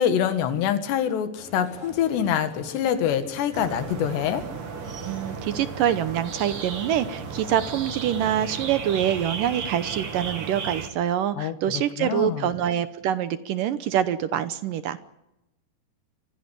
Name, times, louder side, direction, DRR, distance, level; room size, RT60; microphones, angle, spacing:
voice 1, 0.0-4.4 11.4-11.5 12.0-12.5, left 9 dB, 80° left, 9 dB, 3.9 m, -25 dB
sound 1, 1.3-8.3, left 1 dB, 20° left, 4.0 m, -46 dB
sound 2, 3.5-10.9, right 5 dB, 45° right, 2.0 m, -34 dB
voice 2, 5.1-15.0, right 10 dB, 75° right, 12 dB, 2.1 m, -25 dB
25.0 x 15.5 x 9.9 m, 0.91 s
omnidirectional pair, 4.9 m